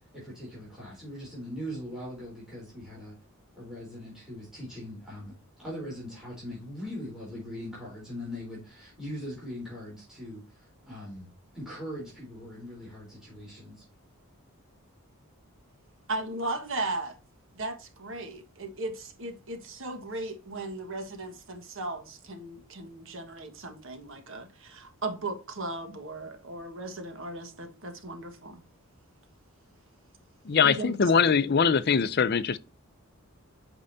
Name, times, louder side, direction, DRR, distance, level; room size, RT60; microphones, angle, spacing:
voice 1, 0.1-3.1 3.6-11.3 11.5-13.8, equal, ahead, 3.7 m, -40 dB
voice 2, 16.1-17.2 17.5-28.6 30.6-30.9, right 2 dB, 60° right, 1.5 m, -36 dB
voice 3, 30.4-32.6, left 6 dB, 45° left, 0.5 m, -22 dB
8.7 x 5.3 x 2.7 m
head